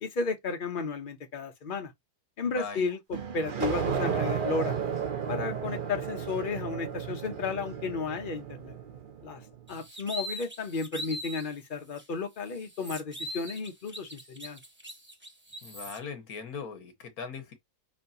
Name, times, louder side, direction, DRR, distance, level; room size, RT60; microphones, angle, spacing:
voice 1, 0.0-1.9 2.4-4.8 5.3-8.8 9.2-9.4 9.7-14.6, left 4 dB, 45° left, 0.8 m, -33 dB
voice 2, 2.5-2.9 15.6-17.5, left 5 dB, 75° left, 1.6 m, -40 dB
sound 1, 3.1-9.5, right 7 dB, 45° right, 0.7 m, -33 dB
sound 2, 9.7-11.5 11.9-12.0 12.4-16.0, equal, 10° right, 0.7 m, -41 dB
6.0 x 2.9 x 2.7 m
omnidirectional pair, 1.6 m